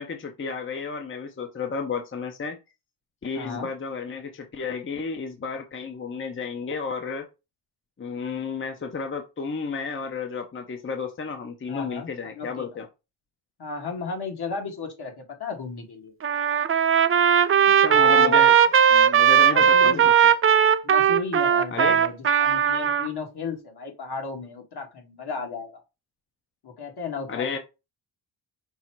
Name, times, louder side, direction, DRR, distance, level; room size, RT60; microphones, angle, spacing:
voice 1, 0.0-2.6 3.2-7.3 8.0-12.9 17.8-18.5 18.9-20.1 21.7-22.0 27.3-27.6, left 5 dB, 25° left, 0.8 m, -32 dB
voice 2, 3.3-3.7 11.7-12.1 12.3-12.7 13.6-16.1 17.9-18.5 19.5-20.1 20.8-25.8 26.6-27.6, left 5 dB, 55° left, 1.5 m, -34 dB
Trumpet, 16.2-23.1, right 8 dB, 30° right, 0.4 m, -18 dB
5.4 x 2.0 x 4.5 m
cardioid pair, 65°, 48 cm